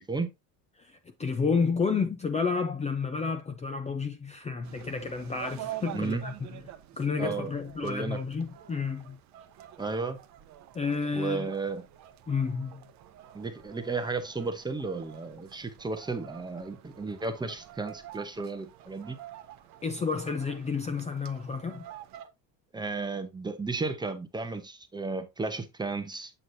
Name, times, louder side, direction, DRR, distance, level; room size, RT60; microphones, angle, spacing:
voice 1, 0.8-6.3 7.0-9.2 10.7-11.5 12.3-12.8 19.8-21.9, left 5 dB, 20° left, 0.5 m, -30 dB
sound 1, 4.6-22.2, right 13 dB, 50° right, 0.8 m, -49 dB
voice 2, 7.2-7.5 7.8-8.2 9.8-10.2 11.1-11.8 13.3-19.2 22.7-26.3, right 3 dB, 10° right, 0.7 m, -33 dB
sound 2, 8.4-22.3, right 11 dB, 85° right, 1.3 m, -52 dB
8.0 x 5.9 x 2.6 m
cardioid pair, 150°, 38 cm